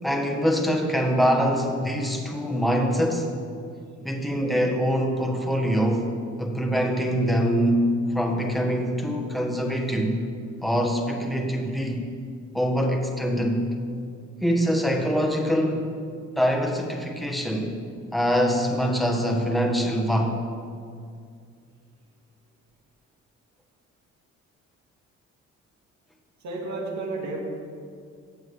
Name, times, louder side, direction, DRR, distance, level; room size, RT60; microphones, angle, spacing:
voice 1, 0.0-3.3 4.0-6.1 6.4-10.1 10.6-12.0 12.5-13.7 14.4-15.8 16.4-17.7 18.1-20.4, equal, ahead, 0 dB, 1.5 m, -24 dB
voice 2, 26.4-27.4, right 3 dB, 65° right, -1 dB, 2.5 m, -31 dB
15.0 x 8.6 x 3.6 m, 2.2 s
cardioid pair, 90°, 30 cm